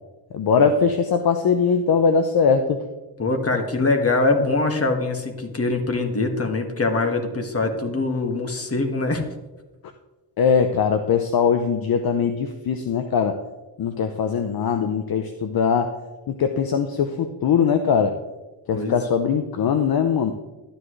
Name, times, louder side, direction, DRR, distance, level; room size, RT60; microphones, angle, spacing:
voice 1, 0.3-2.8 10.4-13.4 13.8-15.9 16.3-18.2 18.7-20.3, left 6 dB, 55° left, 7 dB, 0.8 m, -21 dB
voice 2, 3.2-9.2 18.7-19.0, left 3 dB, 35° left, 4 dB, 1.9 m, -23 dB
12.0 x 10.5 x 3.2 m, 1.1 s
cardioid pair, 65°, 43 cm